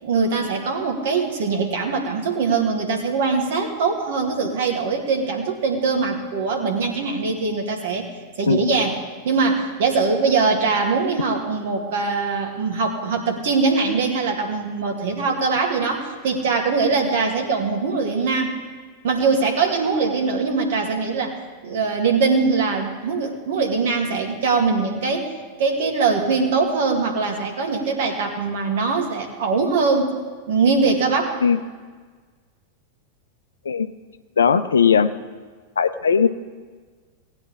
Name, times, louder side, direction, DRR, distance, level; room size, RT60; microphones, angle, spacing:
voice 1, 0.0-8.1 8.4-9.0 9.2-18.5 19.0-21.3 21.6-25.3 25.6-30.1 30.5-31.4, right 4 dB, 55° right, 2 dB, 2.1 m, -22 dB
voice 2, 34.4-35.1 35.8-36.3, left 6 dB, 70° left, 11 dB, 0.6 m, -18 dB
19.0 x 9.1 x 3.6 m, 1.5 s
figure-of-eight pair, 90°, 0 cm